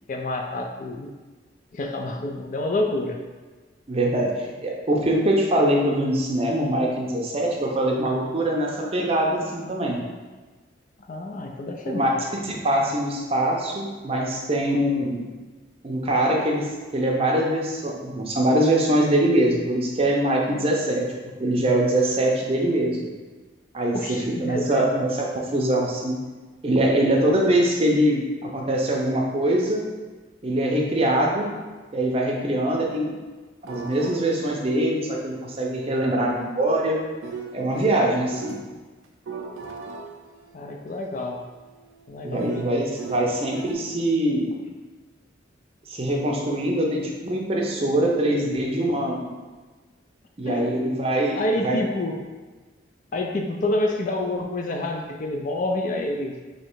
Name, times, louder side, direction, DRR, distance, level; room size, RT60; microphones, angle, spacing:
voice 1, 0.1-1.1 1.7-3.2 11.1-12.2 23.9-24.9 40.5-41.4 42.1-42.8 50.4-50.7 51.4-52.2 53.1-56.4, left 2 dB, 40° left, 3 dB, 0.3 m, -28 dB
voice 2, 3.9-10.0 11.9-15.2 15.8-16.7 16.9-21.1 21.4-23.0 23.7-26.2 26.6-29.9 30.4-31.5 31.9-33.1 33.6-37.0 37.5-38.6 42.2-44.6 45.9-49.3 50.4-51.8, right 1 dB, 30° right, -1 dB, 0.5 m, -23 dB
sound 1, 33.6-38.6 39.0-43.7, right 5 dB, 85° right, 0.4 m, -40 dB
3.1 x 2.7 x 4.5 m, 1.3 s
head